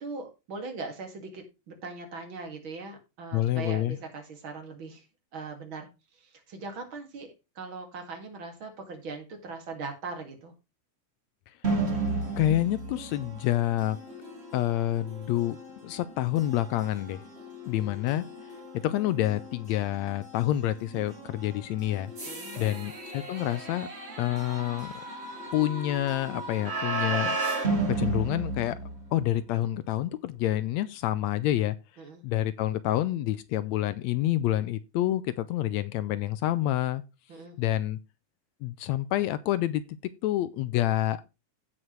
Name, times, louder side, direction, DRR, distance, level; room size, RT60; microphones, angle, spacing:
voice 1, 0.0-5.0 5.3-5.9 6.2-7.3 7.6-10.5 17.8-17.9 22.3-22.9 32.0-32.2 37.3-37.6, right 3 dB, 45° right, 2.8 m, -40 dB
voice 2, 3.3-4.0 12.4-14.0 14.5-15.6 15.8-17.3 17.7-18.3 18.8-22.1 22.6-23.9 24.2-24.9 25.5-27.4 27.9-28.8 29.1-31.8 32.2-37.0 37.6-38.0 38.6-39.8 40.2-41.2, left 13 dB, 80° left, 1.7 m, -28 dB
sound 1, 11.6-29.4, right 3 dB, 25° right, 1.9 m, -35 dB
15.5 x 5.8 x 3.1 m
omnidirectional pair, 3.4 m